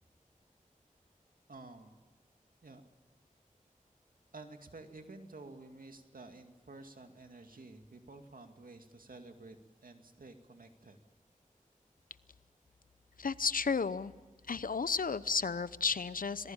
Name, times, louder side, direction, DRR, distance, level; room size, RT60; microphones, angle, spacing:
voice 1, 1.5-1.9 2.6-2.8 4.3-9.6 9.8-11.0, right 3 dB, 90° right, 6 dB, 2.3 m, -51 dB
voice 2, 13.2-14.1 14.5-16.5, left 5 dB, 85° left, 16 dB, 0.8 m, -33 dB
27.0 x 19.5 x 8.9 m, 1.2 s
wide cardioid pair, 70°, 14 cm